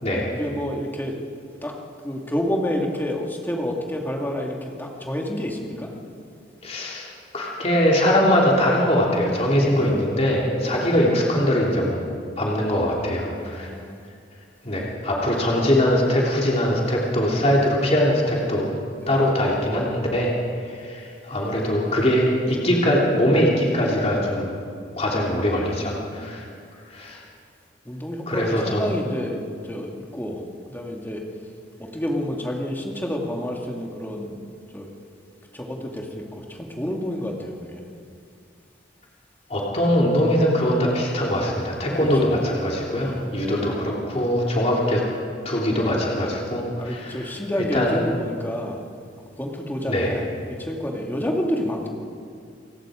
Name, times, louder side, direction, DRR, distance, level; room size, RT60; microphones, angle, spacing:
voice 1, 0.3-1.2 1.6-1.7 2.0-5.9 9.7-10.0 10.6-10.8 13.4-13.9 17.5-17.6 19.0-19.2 25.7-26.3 27.9-31.2 31.8-34.4 34.7-34.9 35.5-37.9 42.0-42.3 43.0-43.2 46.9-48.8 49.4-51.9, left 1 dB, 10° left, 0 dB, 2.2 m, -29 dB
voice 2, 6.6-7.1 7.3-12.0 12.4-13.7 14.6-18.7 19.1-20.3 20.6-24.5 25.0-26.4 26.9-27.2 28.3-28.9 39.5-45.0 45.4-47.2 47.7-48.1 49.9-50.1, equal, 35° left, -3 dB, 3.1 m, -22 dB
29.0 x 18.0 x 5.1 m, 2.3 s
head